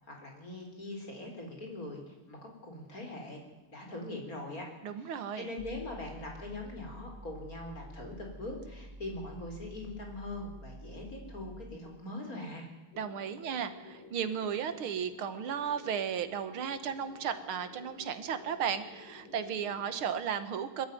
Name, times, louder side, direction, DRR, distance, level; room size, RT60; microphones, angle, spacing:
voice 1, 0.0-3.4 3.7-12.7, left 2 dB, 40° left, 2 dB, 4.7 m, -42 dB
voice 2, 4.8-5.5 13.0-20.9, right 8 dB, 75° right, 11 dB, 2.2 m, -35 dB
sound 1, 5.6-11.8, right 1 dB, 15° right, 1.9 m, -49 dB
sound 2, 12.9-20.2, left 3 dB, 60° left, 3.7 m, -53 dB
21.0 x 13.5 x 9.3 m, 1.1 s
omnidirectional pair, 2.4 m